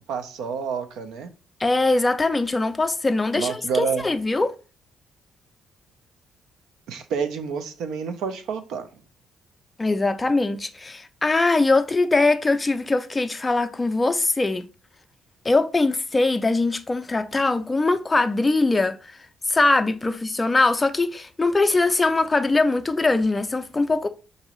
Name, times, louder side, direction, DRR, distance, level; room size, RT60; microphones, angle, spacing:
voice 1, 0.1-1.3 3.4-4.0 6.9-8.9, right 6 dB, 85° right, 0.5 m, -28 dB
voice 2, 1.6-4.5 9.8-14.7 15.4-19.2 19.5-24.1, left 3 dB, 20° left, 0.3 m, -22 dB
4.8 x 2.6 x 3.0 m
cardioid pair, 105°, 0 cm